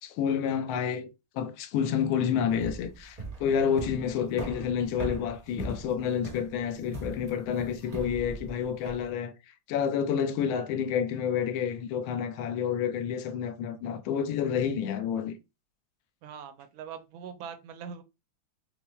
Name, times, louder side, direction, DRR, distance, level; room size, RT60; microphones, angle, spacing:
voice 1, 0.0-1.1 1.3-9.3 9.7-15.4, left 8 dB, 75° left, 1.3 m, -29 dB
sound 1, 2.5-9.0, right 2 dB, 50° right, 0.4 m, -40 dB
voice 2, 16.2-18.0, right 7 dB, 75° right, 1.3 m, -42 dB
5.6 x 2.1 x 2.3 m
omnidirectional pair, 2.4 m